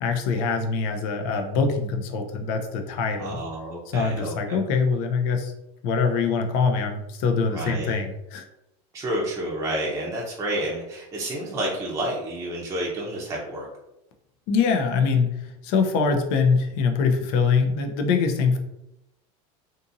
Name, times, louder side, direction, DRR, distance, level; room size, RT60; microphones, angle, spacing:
voice 1, 0.0-3.4 3.9-5.5 5.8-8.5 14.5-18.6, left 5 dB, 60° left, 5 dB, 0.6 m, -23 dB
voice 2, 3.2-4.6 7.5-8.0 8.9-13.7, right 1 dB, 15° right, -3 dB, 0.6 m, -30 dB
2.6 x 2.6 x 2.5 m, 0.87 s
supercardioid pair, 125°, 18 cm